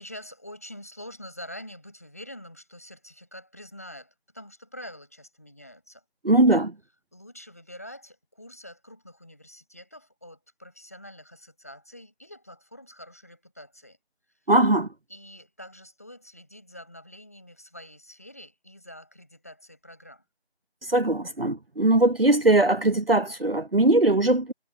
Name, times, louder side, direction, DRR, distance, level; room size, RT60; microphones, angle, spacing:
voice 1, 0.0-6.0 7.1-14.0 14.3-14.5 15.1-20.2, equal, 15° left, 7.1 m, -46 dB
voice 2, 6.2-6.7 14.5-14.9 20.9-24.5, right 2 dB, 65° right, 0.9 m, -20 dB
figure-of-eight pair, 175°, 32 cm